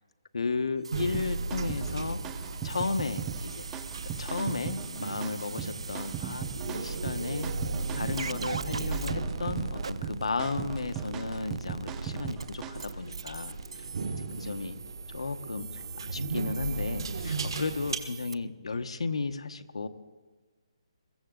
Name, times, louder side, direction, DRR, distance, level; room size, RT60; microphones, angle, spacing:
voice 1, 0.3-2.2 2.6-3.6 4.0-7.5 7.9-13.8 14.2-14.8 15.1-19.9, left 4 dB, 75° left, 10 dB, 1.1 m, -34 dB
sound 1, 0.8-18.4, right 4 dB, 65° right, 0.5 m, -42 dB
sound 2, 0.9-18.0, right 3 dB, 50° right, 1.5 m, -37 dB
sound 3, 1.1-12.9, right 9 dB, 10° right, 0.4 m, -39 dB
22.5 x 14.5 x 3.9 m, 1.3 s
hypercardioid pair, 175°, 3 cm